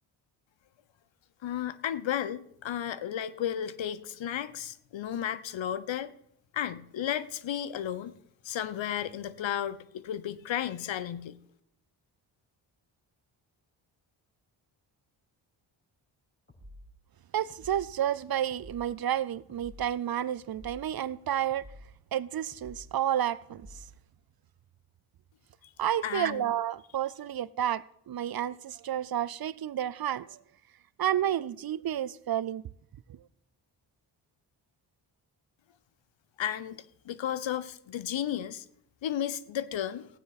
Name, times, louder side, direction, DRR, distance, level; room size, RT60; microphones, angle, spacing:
voice 1, 1.4-6.1 6.5-8.1 8.4-11.4 26.0-26.4 36.4-38.6 39.0-40.1, left 10 dB, 65° left, 0.9 m, -33 dB
sound 1, 16.5-16.9 17.5-17.9 18.5-18.9 19.5-19.9 20.5-20.9 21.5-21.9 22.5-22.9 23.5-23.9, left 1 dB, 20° left, 5.7 m, -50 dB
voice 2, 17.3-21.7 22.1-23.8 25.8-30.4 31.0-32.6 33.1-33.2, right 11 dB, 50° right, 0.6 m, -31 dB
16.0 x 9.3 x 4.1 m
supercardioid pair, 55°, 50 cm